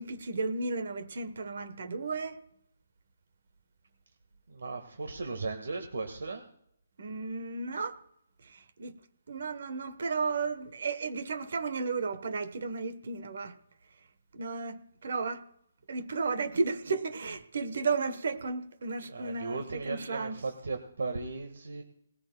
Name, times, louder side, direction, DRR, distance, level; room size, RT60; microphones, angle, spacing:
voice 1, 0.0-2.4 7.0-8.0 8.4-9.0 9.3-13.6 14.3-15.4 15.9-20.4, right 4 dB, 50° right, 1.0 m, -34 dB
voice 2, 4.5-6.4 19.1-21.8, right 3 dB, 80° right, 1.5 m, -36 dB
19.5 x 15.0 x 2.2 m
hypercardioid pair, 180°, 0 cm